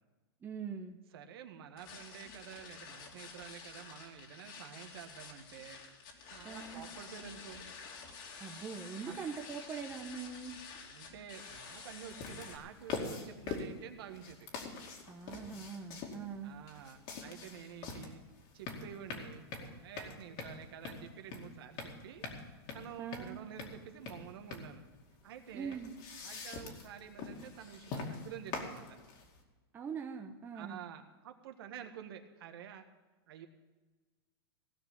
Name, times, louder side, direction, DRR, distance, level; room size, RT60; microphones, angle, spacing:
voice 1, 0.4-1.0 6.4-6.8 8.4-10.6 15.1-16.5 23.0-23.4 25.5-25.9 29.7-30.8, right 6 dB, 15° right, 3 dB, 0.9 m, -42 dB
voice 2, 1.1-5.8 6.2-7.7 9.0-9.2 10.9-14.5 16.4-18.2 18.5-22.2 22.7-24.8 25.2-25.8 26.2-29.0 30.5-32.9 33.3-33.5, right 9 dB, 65° right, 6 dB, 1.6 m, -49 dB
sound 1, 1.8-12.6, left 5 dB, 55° left, 2.7 m, -50 dB
sound 2, 11.4-29.4, left 4 dB, 40° left, 2.4 m, -44 dB
17.0 x 6.0 x 9.9 m, 1.2 s
supercardioid pair, 145°, 14 cm